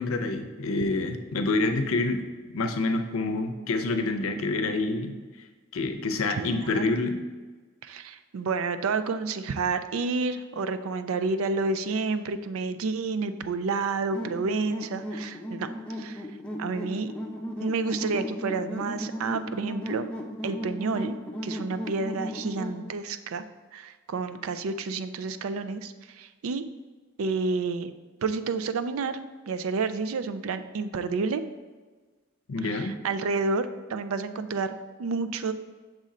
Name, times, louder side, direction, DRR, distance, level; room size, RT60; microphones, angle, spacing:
voice 1, 0.0-2.2 2.5-5.2 5.7-7.2 32.5-33.0, left 3 dB, 85° left, 7 dB, 0.6 m, -27 dB
voice 2, 6.4-7.0 7.8-15.7 16.0-16.3 16.6-17.1 17.6-20.1 20.4-21.2 21.4-23.4 23.7-26.6 27.2-27.9 28.2-29.2 29.5-31.4 32.6-35.5, right 4 dB, 85° right, 11 dB, 0.4 m, -30 dB
sound 1, 14.1-22.8, equal, 5° left, 0.5 m, -36 dB
6.2 x 3.8 x 4.2 m, 1.4 s
head